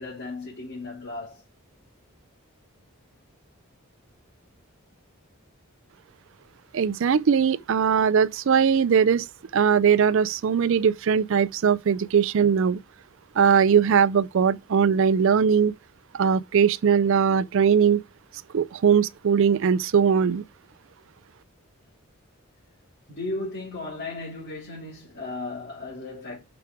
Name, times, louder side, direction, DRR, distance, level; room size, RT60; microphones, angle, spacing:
voice 1, 0.0-1.4 23.1-26.4, left 2 dB, 50° left, 3.9 m, -35 dB
voice 2, 6.7-9.3 9.5-12.8 13.4-15.7 16.1-18.0 18.5-20.4, right 7 dB, 60° right, 0.4 m, -20 dB
7.0 x 5.9 x 4.7 m
head